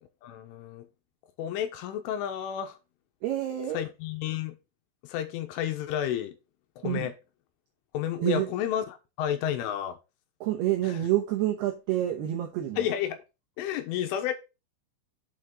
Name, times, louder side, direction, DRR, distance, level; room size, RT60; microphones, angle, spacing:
voice 1, 0.2-0.9 1.4-2.8 3.7-4.6 5.0-6.4 6.8-7.1 7.9-10.0 10.8-11.0 12.8-13.3 13.6-14.3, left 10 dB, 80° left, 3.5 m, -31 dB
voice 2, 3.2-3.8 6.8-7.1 8.2-8.5 10.4-12.8, right 13 dB, 80° right, 2.3 m, -28 dB
7.7 x 5.6 x 5.3 m
omnidirectional pair, 6.0 m